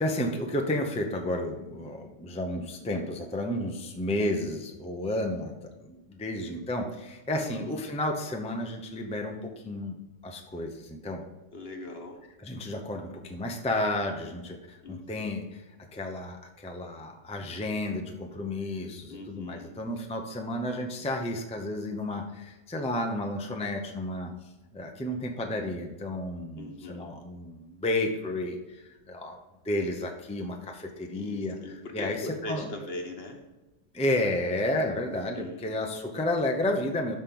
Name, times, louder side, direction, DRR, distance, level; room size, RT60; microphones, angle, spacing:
voice 1, 0.0-5.5 5.8-10.0 10.2-11.2 12.4-15.6 15.9-24.3 24.7-29.4 29.6-32.7 33.9-37.1, left 1 dB, 5° left, 3 dB, 0.6 m, -32 dB
voice 2, 7.4-7.8 11.5-12.2 14.8-15.4 19.1-20.0 26.6-27.1 31.1-33.4 35.1-35.6, left 2 dB, 50° left, 3 dB, 1.4 m, -40 dB
12.5 x 4.3 x 3.9 m, 1.1 s
omnidirectional pair, 1.3 m